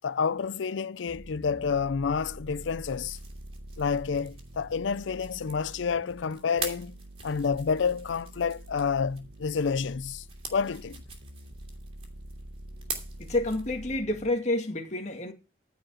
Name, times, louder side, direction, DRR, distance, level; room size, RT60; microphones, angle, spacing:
voice 1, 0.0-3.2 3.8-7.0 7.2-10.2 10.5-11.0, left 5 dB, 85° left, 0.5 m, -29 dB
sound 1, 1.1-14.3, right 1 dB, 80° right, 1.5 m, -46 dB
sound 2, 2.9-14.1, right 4 dB, 30° right, 2.8 m, -44 dB
voice 2, 13.2-15.3, left 2 dB, 40° left, 1.9 m, -29 dB
14.5 x 5.1 x 6.2 m
head